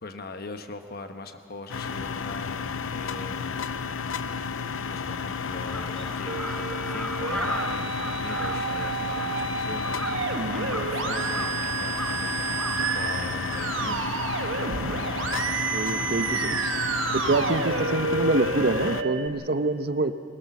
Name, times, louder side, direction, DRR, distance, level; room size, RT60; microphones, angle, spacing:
voice 1, 0.0-3.4 4.8-10.1 10.8-12.5 12.8-14.2, left 2 dB, 50° left, 7 dB, 1.0 m, -40 dB
sound 1, 1.7-19.0, left 5 dB, 75° left, 0.6 m, -32 dB
Crow, 5.7-15.4, equal, 5° left, 0.5 m, -38 dB
Musical instrument, 6.3-19.3, right 5 dB, 70° right, 1.2 m, -30 dB
voice 2, 15.7-16.7 17.1-20.1, right 2 dB, 50° right, 10 dB, 0.7 m, -26 dB
24.0 x 18.0 x 7.2 m, 2.5 s
head